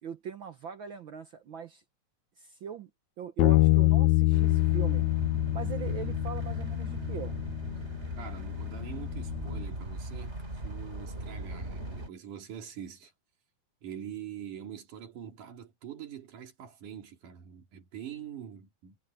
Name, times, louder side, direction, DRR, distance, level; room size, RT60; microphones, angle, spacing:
voice 1, 0.0-1.8 2.4-2.9 3.2-5.1 5.5-7.3 7.7-7.8, right 8 dB, 70° right, 1.2 m, -40 dB
Bass guitar, 3.4-9.6, left 19 dB, 80° left, 1.6 m, -26 dB
sound 1, 4.3-12.1, right 1 dB, 20° right, 4.2 m, -39 dB
voice 2, 8.2-10.4 10.6-13.1 13.8-19.0, right 9 dB, 90° right, 4.4 m, -44 dB
omnidirectional pair, 3.5 m